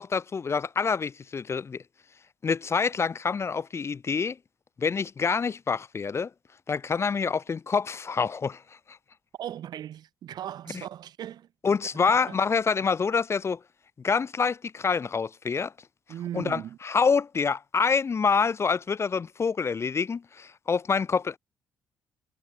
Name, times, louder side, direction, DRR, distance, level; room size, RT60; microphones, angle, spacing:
voice 1, 0.0-1.8 2.4-4.4 4.8-6.3 6.7-8.6 8.9-9.0 11.6-13.6 14.0-15.7 16.3-21.4, left 5 dB, 35° left, 0.6 m, -26 dB
voice 2, 9.4-11.5 12.0-12.4 16.1-16.8, right 11 dB, 65° right, 1.6 m, -38 dB
supercardioid pair, 60°, 8 cm